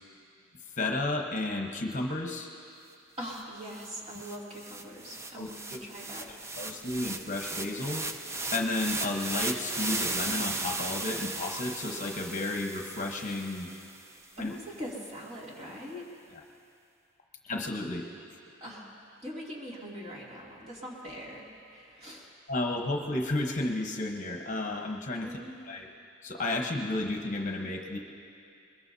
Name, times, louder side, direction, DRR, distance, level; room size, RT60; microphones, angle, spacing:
voice 1, 0.8-2.5 5.4-5.8 6.3-8.0 8.5-13.7 14.4-14.5 17.4-18.1 22.5-25.3 25.6-25.9 26.2-28.0, left 2 dB, 40° left, 2 dB, 1.0 m, -32 dB
voice 2, 3.2-6.3 6.6-6.8 14.4-16.1 18.6-18.9 19.2-22.3 25.2-25.6, equal, 35° right, -5 dB, 2.7 m, -42 dB
sound 1, 3.4-3.5 3.7-14.1, right 2 dB, 15° right, 0.5 m, -36 dB
22.0 x 21.5 x 2.8 m, 2.5 s
head